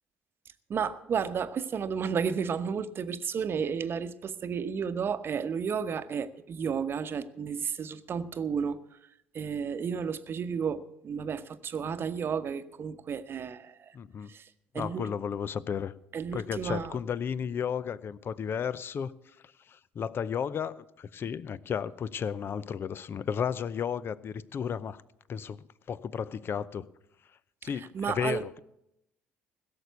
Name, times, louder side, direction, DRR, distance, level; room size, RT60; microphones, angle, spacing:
voice 1, 0.7-8.8 9.3-13.9 14.3-15.1 16.1-17.0 27.6-28.4, right 6 dB, 45° right, 0.9 m, -32 dB
voice 2, 13.9-14.3 14.7-15.9 16.3-19.1 19.7-25.0 25.3-26.9 27.6-28.6, left 7 dB, 45° left, 0.6 m, -33 dB
16.5 x 7.0 x 8.2 m
hypercardioid pair, 60°, 5 cm